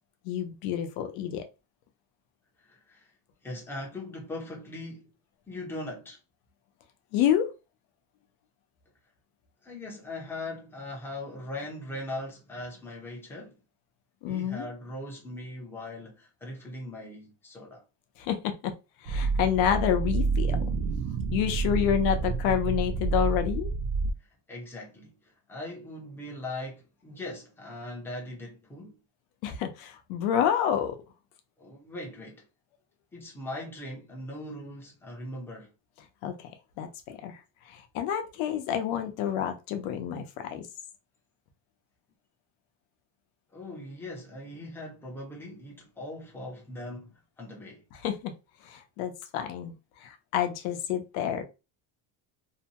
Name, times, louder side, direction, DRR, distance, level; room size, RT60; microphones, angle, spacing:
voice 1, 0.2-1.4 7.1-7.5 14.2-14.7 18.2-18.7 19.0-20.8 21.3-23.7 29.4-31.0 36.2-36.5 36.8-37.4 37.7-40.7 48.0-48.3 48.6-49.7 50.0-51.4, left 9 dB, 70° left, 0.8 m, -28 dB
voice 2, 2.6-3.1 3.4-5.1 5.5-6.2 9.6-13.6 14.3-17.8 24.2-29.0 31.6-32.4 33.1-35.7 43.5-47.8, left 1 dB, 5° left, 0.6 m, -40 dB
sound 1, 19.1-24.1, right 4 dB, 50° right, 0.5 m, -28 dB
2.7 x 2.2 x 2.8 m
cardioid pair, 160°, 47 cm